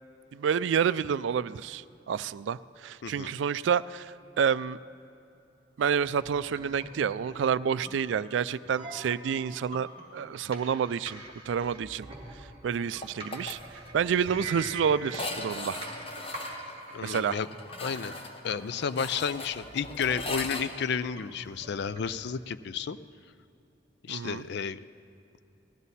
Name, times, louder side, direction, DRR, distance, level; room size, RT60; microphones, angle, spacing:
voice 1, 0.3-4.8 5.8-11.2 11.5-12.1 12.6-13.6 13.9-15.8 17.0-17.4 24.1-24.4, right 7 dB, 70° right, 17 dB, 0.3 m, -29 dB
voice 2, 3.0-3.3 16.9-17.5 17.8-18.1 18.4-23.0 24.0-24.8, left 6 dB, 65° left, 14 dB, 0.4 m, -32 dB
sound 1, 6.0-22.2, right 2 dB, 30° right, 2.4 m, -45 dB
sound 2, 13.0-13.6 13.9-14.0 14.2-14.3 15.1-20.6, left 2 dB, 30° left, 1.1 m, -38 dB
19.5 x 14.5 x 4.1 m, 2.7 s
head